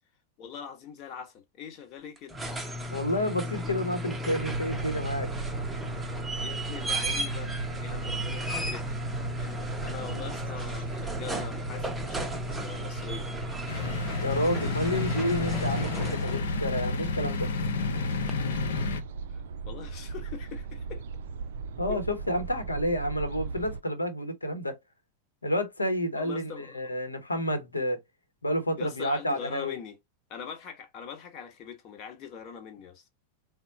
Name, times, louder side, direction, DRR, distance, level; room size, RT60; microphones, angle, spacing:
voice 1, 0.4-2.4 6.4-7.5 7.8-8.8 9.4-13.3 19.3-21.0 21.9-22.0 26.2-26.9 28.7-30.0 30.3-33.0, left 7 dB, 40° left, 1.0 m, -42 dB
sound 1, 2.2-16.5 18.3-18.4, equal, 5° right, 0.7 m, -35 dB
voice 2, 2.9-5.3 14.2-17.5 21.8-24.7 25.4-28.0 28.4-29.8, equal, 80° left, 0.9 m, -30 dB
sound 2, 4.4-23.8, right 5 dB, 60° right, 0.4 m, -37 dB
sound 3, 13.7-19.0, left 4 dB, 60° left, 0.7 m, -31 dB
4.1 x 2.2 x 4.0 m
figure-of-eight pair, 90°, 0 cm